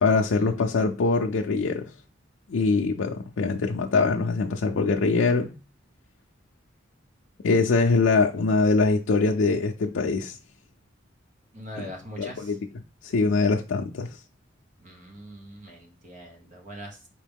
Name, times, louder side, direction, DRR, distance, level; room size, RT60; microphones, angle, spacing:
voice 1, 0.0-1.8 2.5-5.5 7.4-10.4 11.8-11.9 12.2-12.6 13.0-14.2, left 4 dB, 80° left, 0.4 m, -23 dB
voice 2, 11.5-12.6 14.8-17.1, equal, 40° right, 1.0 m, -42 dB
4.6 x 2.9 x 3.5 m
head